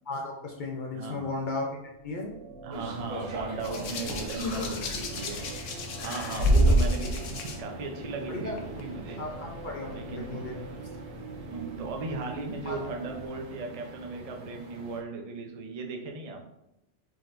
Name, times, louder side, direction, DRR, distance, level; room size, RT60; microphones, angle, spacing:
voice 1, 0.1-2.3 6.3-6.8 8.3-8.6 9.2-10.7 12.6-12.8, left 3 dB, 50° left, 0 dB, 0.6 m, -35 dB
voice 2, 0.9-1.3 2.6-5.5 6.0-9.2 9.9-10.6 11.5-16.4, right 3 dB, 45° right, 2 dB, 0.5 m, -37 dB
sound 1, 1.8-13.3, right 2 dB, 60° right, 1.4 m, -44 dB
sound 2, 2.7-15.0, right 2 dB, 85° right, 1.1 m, -43 dB
Hands, 3.6-7.6 8.6-8.8, equal, 75° left, 1.0 m, -27 dB
4.7 x 3.9 x 2.5 m, 0.87 s
omnidirectional pair, 1.3 m